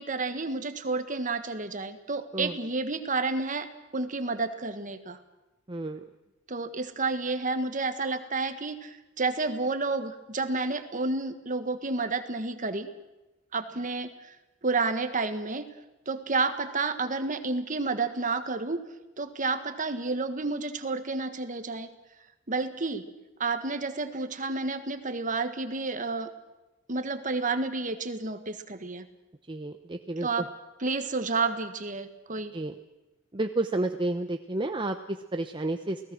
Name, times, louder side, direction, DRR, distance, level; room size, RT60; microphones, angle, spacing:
voice 1, 0.0-5.2 6.5-12.9 13.5-14.3 14.6-15.6 16.1-18.8 19.2-21.9 22.5-23.0 23.4-26.3 26.9-29.0 30.2-30.5 30.8-32.5, right 3 dB, 40° right, 9 dB, 1.6 m, -30 dB
voice 2, 5.7-6.0 29.5-30.3 32.5-32.7 33.3-36.0, right 2 dB, 25° right, 6 dB, 0.8 m, -31 dB
28.5 x 18.0 x 6.3 m, 1.0 s
head